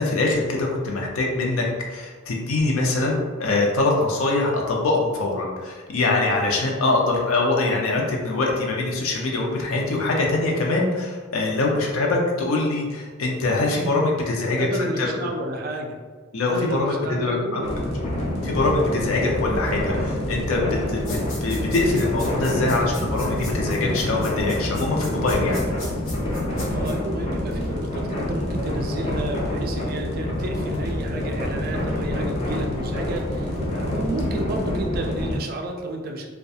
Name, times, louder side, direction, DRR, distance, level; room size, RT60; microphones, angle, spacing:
voice 1, 0.0-15.1 16.3-17.6 18.4-20.6 20.9-25.7, left 2 dB, 85° left, -1 dB, 0.5 m, -23 dB
voice 2, 14.6-16.0 16.5-17.7 26.7-36.3, right 1 dB, 45° right, 2 dB, 0.3 m, -31 dB
sound 1, 17.6-35.4, left 1 dB, 35° left, 0.5 m, -27 dB
sound 2, 21.0-26.9, left 2 dB, 70° left, 0.9 m, -39 dB
2.3 x 2.2 x 2.7 m, 1.5 s
head